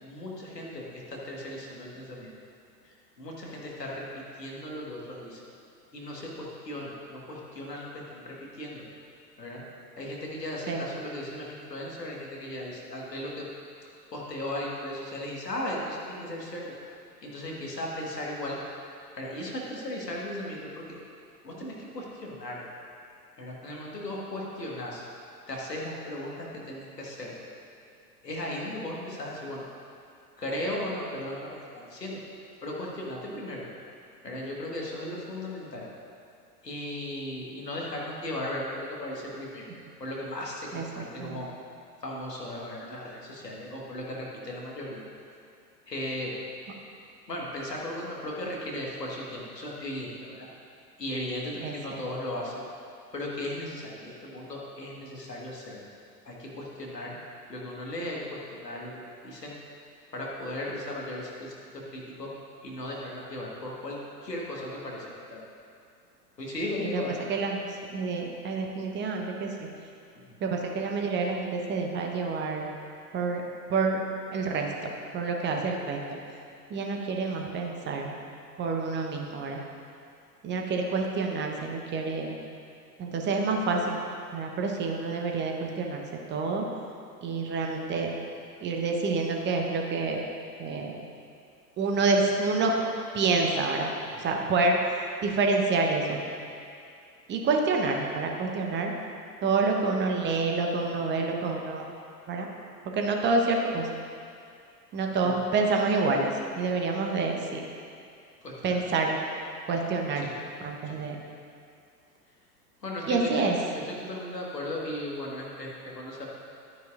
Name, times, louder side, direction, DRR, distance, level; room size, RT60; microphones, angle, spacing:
voice 1, 0.0-2.3 2.8-4.1 4.4-5.4 5.9-8.8 9.4-9.6 10.0-13.5 14.1-16.7 17.2-18.6 19.1-20.9 21.4-22.6 23.4-25.0 25.5-27.3 28.2-29.6 30.4-32.2 32.6-33.7 34.2-35.9 36.6-39.7 40.0-41.5 42.0-45.0 45.9-46.3 47.3-50.5 51.0-52.7 53.1-55.8 56.3-57.1 57.5-59.5 60.1-62.3 62.6-65.4 66.4-67.2 70.2-70.4 75.5-75.7 94.1-94.2 105.2-105.4 108.4-108.8 110.2-110.3 110.9-111.0 112.8-113.5 113.7-116.3, left 1 dB, 85° left, -3 dB, 1.7 m, -36 dB
voice 2, 40.7-41.4 51.6-52.0 66.8-67.0 67.3-67.6 67.9-69.5 70.4-72.7 73.1-73.4 73.7-74.0 74.3-76.0 76.7-78.1 78.6-79.6 80.4-82.4 83.0-84.0 84.3-86.0 86.3-86.6 87.2-88.1 88.6-90.2 90.6-91.0 91.8-92.8 93.1-93.9 94.2-94.8 95.2-96.2 97.3-98.9 99.4-101.8 102.3-102.5 102.9-103.9 104.9-106.3 106.6-107.6 108.6-109.2 109.7-110.3 110.6-111.2 113.1-113.6, right 3 dB, 25° right, 2 dB, 1.0 m, -28 dB
11.5 x 9.4 x 2.5 m, 2.4 s
figure-of-eight pair, 90°, 47 cm